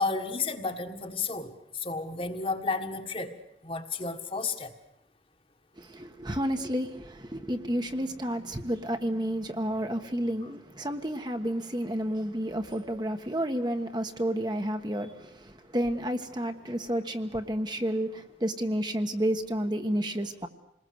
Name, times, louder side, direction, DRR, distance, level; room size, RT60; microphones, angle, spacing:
voice 1, 0.0-4.8, left 4 dB, 30° left, 1.7 m, -32 dB
voice 2, 5.8-20.5, equal, 25° right, 1.3 m, -31 dB
28.0 x 20.5 x 7.9 m
head